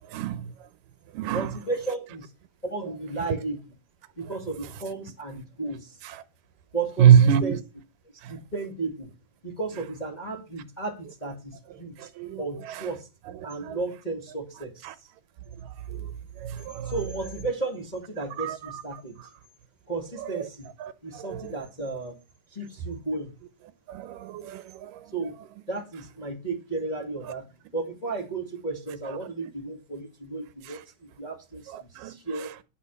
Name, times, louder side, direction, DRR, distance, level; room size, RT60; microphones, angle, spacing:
voice 1, 0.1-0.5 1.1-1.5 6.0-6.2 7.0-7.6 8.2-8.4 12.0-12.9 13.4-13.8 14.8-15.0 15.6-16.9 18.4-19.3 20.2-20.5 20.8-21.5 23.9-25.1 30.6-30.8 31.7-32.5, right 8 dB, 85° right, 2.5 m, -26 dB
voice 2, 1.3-2.3 2.6-3.6 4.2-6.0 6.7-7.6 8.3-9.1 9.4-12.1 12.4-13.1 13.4-14.9 16.8-19.2 19.9-20.7 21.0-22.2 22.5-23.3 25.1-25.3 25.7-27.4 27.7-32.5, right 3 dB, 20° left, 1.5 m, -34 dB
10.5 x 5.1 x 7.1 m
omnidirectional pair, 3.8 m